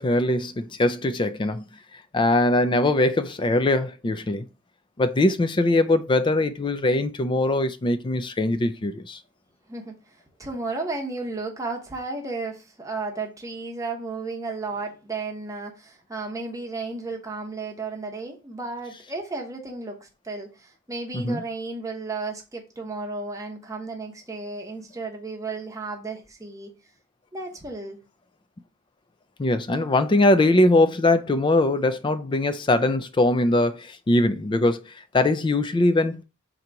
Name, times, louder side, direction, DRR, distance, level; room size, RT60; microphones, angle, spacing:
voice 1, 0.0-1.7 2.1-4.4 5.0-9.2 21.1-21.4 29.4-34.8 35.1-36.2, left 2 dB, 25° left, 0.4 m, -21 dB
voice 2, 9.7-26.7 27.3-28.0, right 3 dB, 15° right, 0.9 m, -33 dB
3.9 x 2.9 x 4.5 m
head